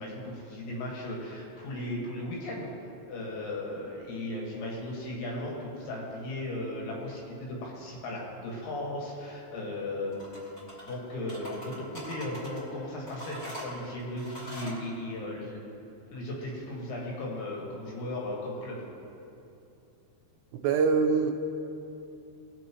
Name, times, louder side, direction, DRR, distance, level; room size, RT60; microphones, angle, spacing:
voice 1, 0.0-2.7 3.1-10.5 10.8-15.6 16.1-18.8, left 1 dB, 90° left, -3 dB, 4.2 m, -36 dB
sound 1, 10.1-11.0 11.3-12.6 13.1-14.8, equal, 65° left, 0.6 m, -42 dB
voice 2, 20.6-21.3, right 5 dB, 85° right, 4 dB, 2.5 m, -23 dB
20.0 x 6.8 x 3.1 m, 2.7 s
omnidirectional pair, 5.2 m